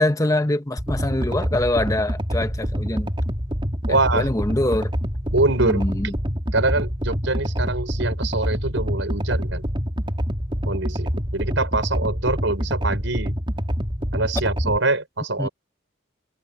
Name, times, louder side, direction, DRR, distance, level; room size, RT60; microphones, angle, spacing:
voice 1, 0.0-3.1 4.1-4.9 5.6-6.1 15.4-15.5, left 1 dB, 15° left, 1.2 m, -23 dB
sound 1, 0.8-14.8, equal, 25° right, 4.1 m, -26 dB
voice 2, 3.9-4.3 5.3-5.8 6.5-9.6 10.7-13.3 14.1-15.5, right 2 dB, 75° right, 5.4 m, -24 dB
head